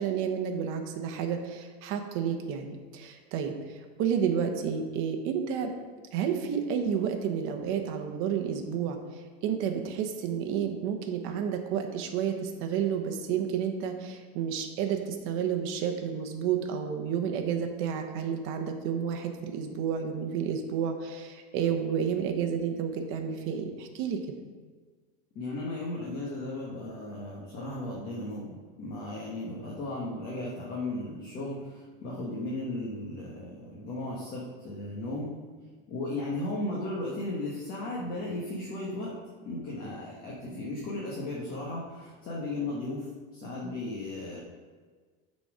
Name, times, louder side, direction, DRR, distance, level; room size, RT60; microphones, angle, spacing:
voice 1, 0.0-5.7 6.1-24.2, right 7 dB, 45° right, 5 dB, 1.0 m, -31 dB
voice 2, 25.3-35.3 35.9-39.1 39.4-44.4, left 2 dB, 30° left, -5 dB, 1.2 m, -35 dB
9.8 x 4.2 x 4.9 m, 1.5 s
supercardioid pair, 165°, 29 cm